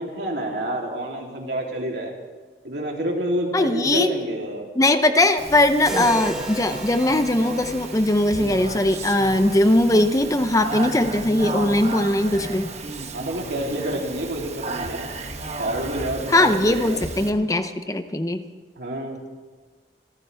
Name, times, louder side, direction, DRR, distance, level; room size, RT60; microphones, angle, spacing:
voice 1, 0.0-2.1 2.6-4.6 5.9-6.0 13.1-15.1 15.6-17.1 18.8-19.2, right 1 dB, 70° right, -1 dB, 3.2 m, -28 dB
voice 2, 3.5-4.1 4.8-12.7 16.3-18.4, left 1 dB, 20° left, 8 dB, 0.7 m, -20 dB
Speech, 5.4-17.3, right 3 dB, 40° right, 1.3 m, -34 dB
sound 1, 5.9-9.9, equal, 5° right, 2.5 m, -35 dB
27.5 x 14.0 x 3.5 m, 1.3 s
head